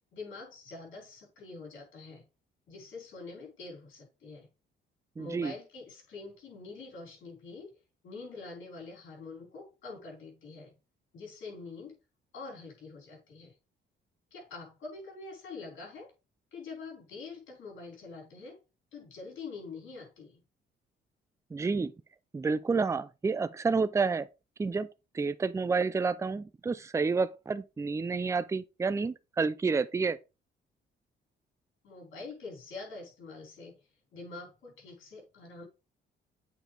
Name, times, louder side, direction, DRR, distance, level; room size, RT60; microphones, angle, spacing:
voice 1, 0.1-2.2 2.7-4.5 5.2-7.8 8.0-10.7 11.1-12.0 12.3-13.5 14.3-16.1 16.5-18.6 18.9-20.4 31.8-33.8 34.1-35.7, left 3 dB, 75° left, 4.4 m, -45 dB
voice 2, 5.2-5.5 21.5-21.9 22.3-24.3 24.6-24.9 25.1-30.2, right 4 dB, 15° right, 0.4 m, -29 dB
8.2 x 4.5 x 3.3 m
cardioid pair, 90°, 20 cm